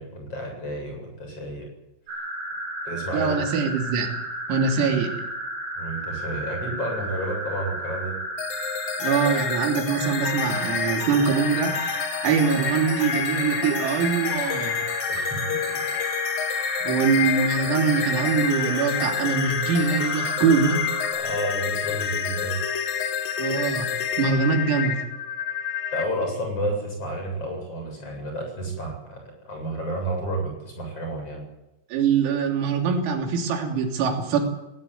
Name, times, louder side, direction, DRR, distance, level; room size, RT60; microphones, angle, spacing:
voice 1, 0.0-1.7 2.9-3.4 5.8-8.1 15.1-15.8 16.8-16.9 21.1-22.5 25.9-31.4, right 1 dB, 30° left, 2 dB, 8.6 m, -31 dB
sound 1, 2.1-21.1, right 1 dB, 60° right, 10.5 m, -33 dB
voice 2, 3.1-4.2 4.5-5.2 9.0-14.8 16.8-20.8 23.4-23.9 24.2-25.0 31.9-34.4, right 6 dB, 90° right, 2 dB, 5.8 m, -23 dB
sound 2, 8.4-26.0, left 8 dB, 60° left, 2.5 m, -28 dB
19.5 x 18.5 x 9.6 m, 0.94 s
omnidirectional pair, 5.9 m